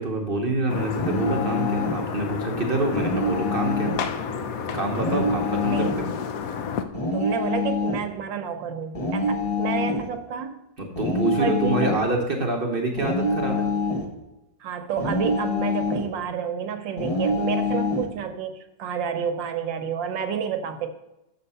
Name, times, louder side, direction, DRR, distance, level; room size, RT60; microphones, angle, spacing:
voice 1, 0.0-4.0 4.7-6.1 10.8-13.7, right 2 dB, 40° right, 1 dB, 1.0 m, -26 dB
sound 1, 0.7-6.8, left 6 dB, 65° left, 0.9 m, -31 dB
sound 2, 0.9-2.0 2.9-4.1 4.9-6.1 6.9-8.0 8.9-10.1 11.0-12.1 13.0-14.1 15.0-16.1 17.0-18.1, left 2 dB, 25° left, 0.9 m, -26 dB
voice 2, 7.1-10.6 11.4-11.9 14.6-20.9, right 7 dB, 85° right, 7 dB, 1.5 m, -30 dB
6.8 x 6.7 x 5.4 m, 0.93 s
omnidirectional pair, 2.0 m